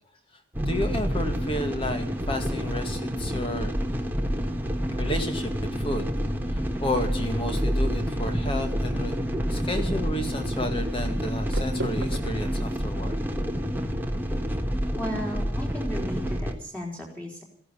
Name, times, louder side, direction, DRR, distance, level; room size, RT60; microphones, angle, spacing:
sound 1, 0.5-16.6, equal, 10° right, 1.3 m, -28 dB
voice 1, 0.7-3.8 5.0-6.1 6.5-9.2 9.5-13.2, left 1 dB, 25° left, 6 dB, 2.1 m, -31 dB
sound 2, 4.1-14.2, right 2 dB, 75° right, 1.3 m, -43 dB
voice 2, 15.0-17.4, equal, 5° left, 0 dB, 3.7 m, -35 dB
15.5 x 11.0 x 8.5 m, 0.65 s
head